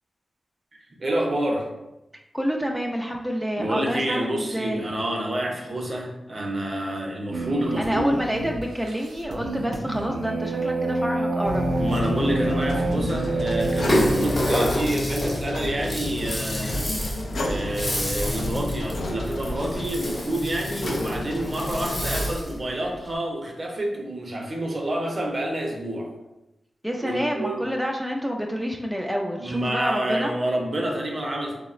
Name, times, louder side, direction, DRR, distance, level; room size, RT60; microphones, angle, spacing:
voice 1, 1.0-1.7 3.6-8.1 11.5-26.1 27.0-27.7 29.4-31.5, right 1 dB, 50° right, 0 dB, 0.6 m, -28 dB
voice 2, 2.3-4.9 7.8-11.7 26.8-30.3, equal, ahead, 0 dB, 0.3 m, -28 dB
sound 1, 7.3-14.3, right 2 dB, 90° right, 0.3 m, -28 dB
sound 2, 11.4-22.3, left 1 dB, 75° left, 0.4 m, -30 dB
Rattle (instrument), 13.6-22.6, equal, 35° left, 1.0 m, -29 dB
3.5 x 2.0 x 2.4 m, 0.95 s
cardioid pair, 60°, 0 cm